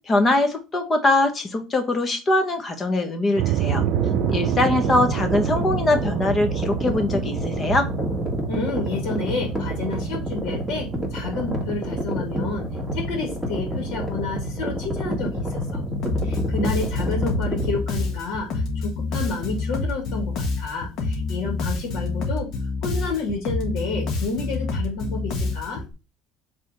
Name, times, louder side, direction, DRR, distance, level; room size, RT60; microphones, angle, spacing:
voice 1, 0.1-3.8 4.3-7.9, left 2 dB, 25° left, 6 dB, 1.3 m, -22 dB
sound 1, 3.4-18.6, right 14 dB, 70° right, 0.4 m, -31 dB
sound 2, 3.7-17.8, equal, 5° left, 1.9 m, -28 dB
voice 2, 8.5-15.8 16.2-22.5 22.8-25.8, left 3 dB, 80° left, 0 dB, 2.4 m, -30 dB
Bass guitar, 16.0-25.9, left 3 dB, 60° left, 1.5 m, -27 dB
5.0 x 3.7 x 5.2 m, 0.31 s
cardioid pair, 125°, 0 cm